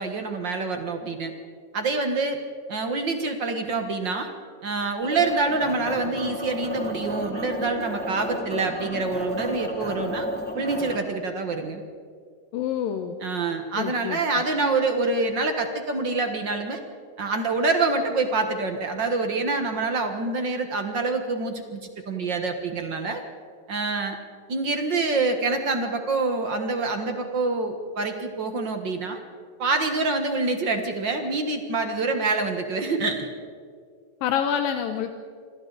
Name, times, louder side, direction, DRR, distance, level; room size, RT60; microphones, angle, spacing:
voice 1, 0.0-1.3 1.7-2.4 2.7-4.3 4.6-10.3 10.5-11.8 13.2-16.8 17.2-21.8 22.1-23.2 23.7-24.2 24.5-29.2 29.6-33.3, right 3 dB, 55° right, 5 dB, 1.3 m, -26 dB
sound 1, 5.0-11.0, equal, 5° left, 1.9 m, -32 dB
voice 2, 12.5-13.2 13.8-14.2 34.2-35.1, left 8 dB, 85° left, 6 dB, 2.6 m, -27 dB
27.0 x 25.5 x 4.0 m, 2.1 s
omnidirectional pair, 4.0 m